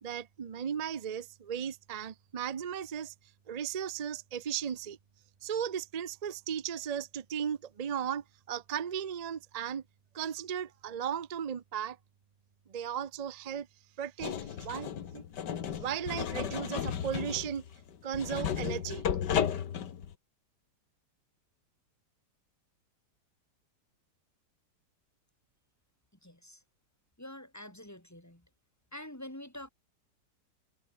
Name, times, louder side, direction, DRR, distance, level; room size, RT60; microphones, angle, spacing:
voice 1, 0.0-3.1 3.5-5.0 5.4-9.8 10.1-12.0 12.7-13.7 14.0-14.9 15.1-15.2 15.8-17.6 18.0-19.1, right 8 dB, 70° right, 0.3 m, -36 dB
sound 1, 14.2-20.1, left 8 dB, 75° left, 1.9 m, -34 dB
voice 2, 26.2-26.6 27.2-28.5 28.9-29.7, left 1 dB, 10° left, 4.2 m, -46 dB
omnidirectional pair, 1.9 m